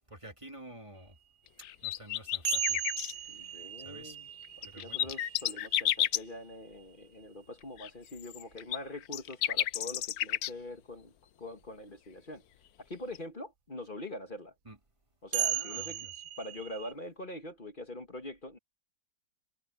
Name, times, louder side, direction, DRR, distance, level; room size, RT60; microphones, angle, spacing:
voice 1, 0.1-1.2 1.8-2.8 3.1-4.2 4.6-5.1 14.7-14.8 15.5-16.1, right 1 dB, 20° right, 1.6 m, -50 dB
sound 1, 1.6-3.1 4.4-6.2 7.8-10.5 13.1-13.2, left 12 dB, 70° left, 1.1 m, -31 dB
sound 2, 2.5-6.7 8.5-8.6 11.6-11.7 15.3-16.9, right 10 dB, 80° right, 1.3 m, -37 dB
voice 2, 3.3-4.3 4.6-12.4 12.8-14.5 15.2-18.6, left 1 dB, 30° left, 1.5 m, -44 dB
omnidirectional pair, 1.9 m